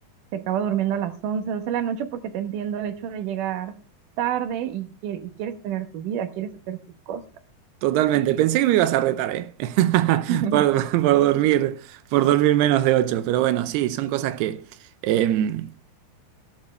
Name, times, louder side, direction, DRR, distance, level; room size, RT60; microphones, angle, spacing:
voice 1, 0.3-3.7 4.2-6.8 7.1-7.2 10.3-10.6, right 9 dB, 65° right, 2.3 m, -28 dB
voice 2, 7.8-11.8 12.1-14.6 15.0-15.7, right 13 dB, 85° right, 2.8 m, -21 dB
17.0 x 9.8 x 3.3 m
omnidirectional pair, 4.7 m